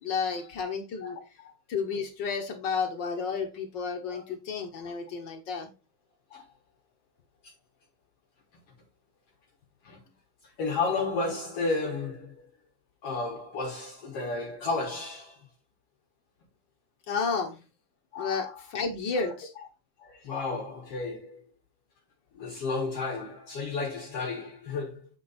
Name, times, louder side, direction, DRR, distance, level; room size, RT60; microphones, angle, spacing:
voice 1, 0.0-1.2 1.7-5.7 17.1-17.6 18.2-19.5, left 5 dB, 90° left, 0.9 m, -31 dB
voice 2, 10.4-12.4 13.0-15.5 18.1-18.6 19.1-19.3 20.0-21.4 22.4-25.1, left 3 dB, 60° left, 2.0 m, -33 dB
8.6 x 4.4 x 4.0 m
omnidirectional pair, 3.4 m